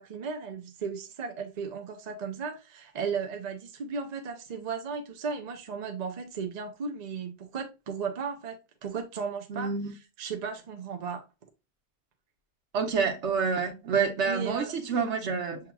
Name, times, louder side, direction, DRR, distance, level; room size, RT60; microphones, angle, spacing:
voice 1, 0.0-9.7 10.2-11.2 14.2-14.7, right 5 dB, 45° right, 0.6 m, -35 dB
voice 2, 9.5-9.9 12.7-15.6, right 5 dB, 85° right, 1.1 m, -28 dB
7.1 x 2.9 x 2.3 m
omnidirectional pair, 1.2 m